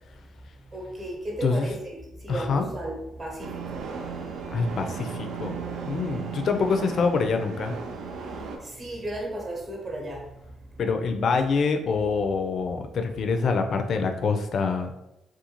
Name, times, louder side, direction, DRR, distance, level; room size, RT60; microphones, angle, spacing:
voice 1, 0.7-3.9 6.5-6.7 8.4-10.3 11.3-11.4, right 1 dB, 35° right, -1 dB, 0.9 m, -35 dB
voice 2, 2.3-2.7 4.5-5.6 5.9-7.7 10.8-14.9, left 4 dB, 60° left, 6 dB, 0.3 m, -25 dB
sound 1, 3.4-8.6, right 6 dB, 80° right, 0.4 m, -36 dB
2.5 x 2.3 x 2.9 m, 0.89 s
cardioid pair, 90°, 0 cm